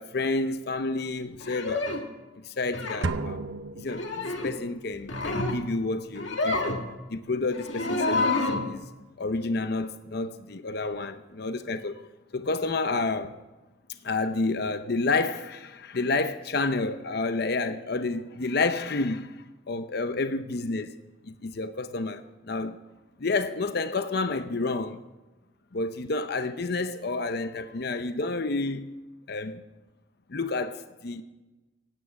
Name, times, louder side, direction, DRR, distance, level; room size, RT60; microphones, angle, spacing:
voice 1, 0.0-1.9 2.3-3.4 3.7-6.8 7.1-8.8 9.2-12.0 12.3-13.4 14.0-19.3 19.7-20.9 21.2-22.8 23.2-25.0 25.7-29.0 29.3-29.6 30.3-31.2, left 3 dB, 55° left, 0.7 m, -30 dB
sound 1, 1.4-2.1 2.7-3.1 3.8-4.6 4.9-5.6 6.1-6.8 7.5-8.7, left 2 dB, 75° left, 2.1 m, -28 dB
sound 2, 3.0-4.7, right 3 dB, 75° right, 0.8 m, -33 dB
16.5 x 8.7 x 8.0 m
head